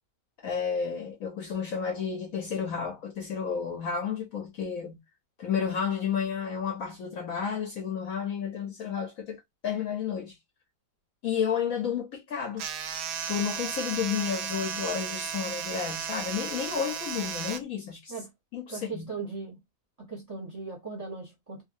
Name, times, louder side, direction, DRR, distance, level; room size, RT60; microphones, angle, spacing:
voice 1, 0.4-5.0 5.4-10.4 11.2-12.6 13.2-18.2 18.5-19.1, left 7 dB, 65° left, 0.9 m, -31 dB
sound 1, 12.6-17.6, right 8 dB, 70° right, 0.9 m, -34 dB
voice 2, 18.7-19.6 20.0-21.6, right 4 dB, 25° right, 0.9 m, -38 dB
2.6 x 2.5 x 2.5 m
omnidirectional pair, 1.8 m